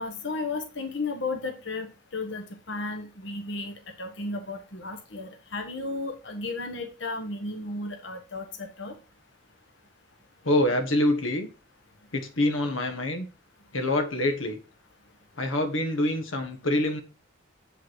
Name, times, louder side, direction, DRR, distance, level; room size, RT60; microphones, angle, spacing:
voice 1, 0.0-1.9 2.1-8.9, left 3 dB, 70° left, 1.4 m, -34 dB
voice 2, 10.4-11.5 12.1-13.3 13.7-14.6 15.4-17.0, left 1 dB, 90° left, 1.4 m, -25 dB
8.2 x 5.7 x 4.6 m
head